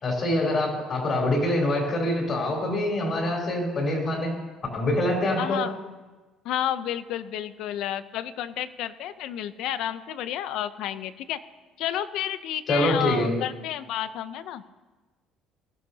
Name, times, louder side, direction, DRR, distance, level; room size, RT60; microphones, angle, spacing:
voice 1, 0.0-4.3 4.7-5.6 12.7-13.3, left 1 dB, 30° left, -1 dB, 3.4 m, -25 dB
voice 2, 5.4-5.8 6.4-11.4 11.8-14.6, left 11 dB, 60° left, 13 dB, 0.6 m, -31 dB
20.0 x 14.0 x 2.8 m, 1.2 s
cardioid pair, 170°, 0 cm